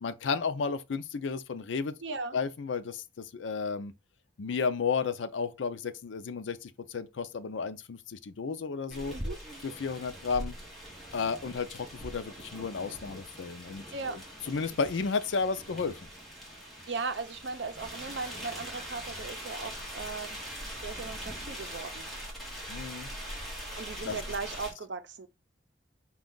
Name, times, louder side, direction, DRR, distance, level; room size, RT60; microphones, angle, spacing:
voice 1, 0.0-1.9 2.3-3.9 4.4-9.1 9.6-10.5 11.1-14.2 14.5-16.0 22.7-23.1 24.1-24.2, left 5 dB, 80° left, 0.5 m, -33 dB
voice 2, 2.0-2.4 9.1-9.4 13.9-14.2 16.9-20.4 20.8-22.0 23.7-25.3, right 4 dB, 70° right, 0.6 m, -37 dB
sound 1, 8.9-24.7, equal, ahead, 1.4 m, -42 dB
5.1 x 2.3 x 3.8 m
head